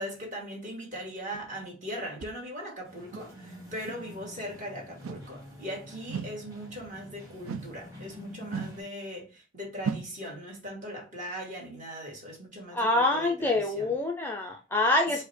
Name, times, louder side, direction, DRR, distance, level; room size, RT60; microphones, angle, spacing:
voice 1, 0.0-13.9 15.1-15.2, equal, 40° right, 1.6 m, -39 dB
sound 1, 1.3-1.4 2.2-2.3 3.1-3.3 3.9-4.0 5.0-5.3 6.1-6.4 7.5-7.8 8.5-8.8 9.8-10.1, right 6 dB, 70° right, 0.5 m, -35 dB
sound 2, 2.8-8.8, left 1 dB, 15° right, 1.5 m, -47 dB
voice 2, 12.7-15.2, left 2 dB, 10° left, 0.4 m, -26 dB
4.6 x 2.2 x 4.2 m
head